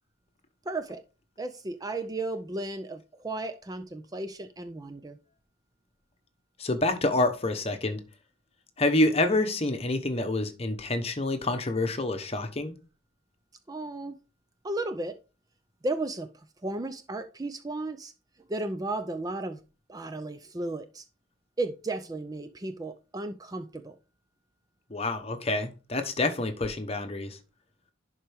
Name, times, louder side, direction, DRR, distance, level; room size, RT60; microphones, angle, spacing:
voice 1, 0.7-1.0 1.4-5.2 13.7-14.2 14.6-15.2 15.8-18.1 18.5-19.6 19.9-21.1 21.6-24.0, right 2 dB, 20° right, 0.4 m, -34 dB
voice 2, 6.6-8.0 8.8-12.7 24.9-27.4, left 2 dB, 30° left, 1.0 m, -27 dB
11.0 x 4.4 x 3.5 m
head